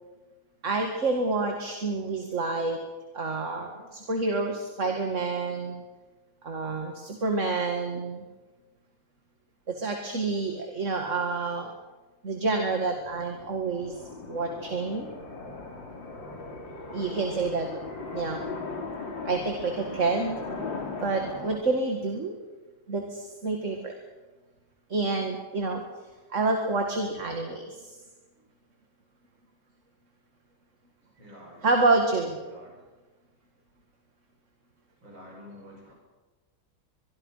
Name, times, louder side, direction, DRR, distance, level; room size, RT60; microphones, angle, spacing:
voice 1, 0.6-2.8 3.1-5.8 6.4-8.2 9.7-11.7 12.2-14.0 14.3-15.1 16.9-17.7 18.1-18.4 19.2-20.4 21.0-22.3 22.9-24.0 24.9-25.8 26.3-27.9 31.6-32.4, right 3 dB, 40° right, 3 dB, 2.3 m, -28 dB
sound 1, 12.6-21.6, left 3 dB, 80° left, 3.7 m, -38 dB
voice 2, 31.2-31.7 32.0-32.1 32.4-32.8 35.0-35.9, equal, 85° right, 0 dB, 7.1 m, -48 dB
24.0 x 23.5 x 5.7 m, 1.2 s
omnidirectional pair, 2.1 m